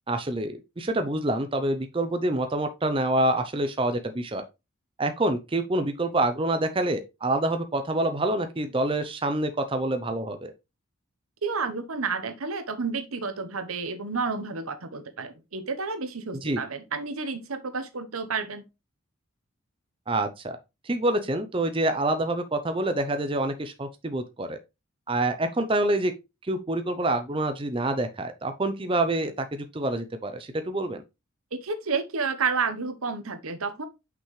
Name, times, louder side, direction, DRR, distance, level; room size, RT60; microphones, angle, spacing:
voice 1, 0.1-4.4 5.0-10.5 16.4-16.6 20.1-20.6 20.8-24.6 25.1-26.1 26.5-31.0, right 1 dB, 25° right, 0.6 m, -27 dB
voice 2, 11.4-18.6 31.5-33.9, right 4 dB, 90° right, 1.1 m, -30 dB
6.0 x 5.7 x 3.2 m
head